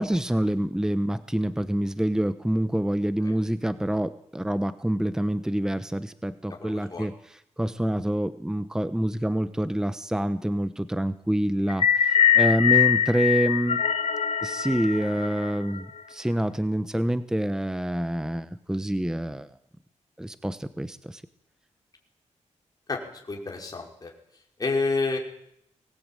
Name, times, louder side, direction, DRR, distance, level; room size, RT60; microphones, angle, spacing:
voice 1, 0.0-13.8 14.4-19.5 20.2-21.2, right 1 dB, 5° right, 12 dB, 1.0 m, -27 dB
voice 2, 6.6-7.1 22.9-23.0 23.3-24.1 24.6-25.2, left 3 dB, 30° left, 0 dB, 5.5 m, -29 dB
sound 1, 11.7-16.0, left 8 dB, 60° left, 1.5 m, -23 dB
24.0 x 19.5 x 9.1 m, 0.73 s
wide cardioid pair, 130°, 12 cm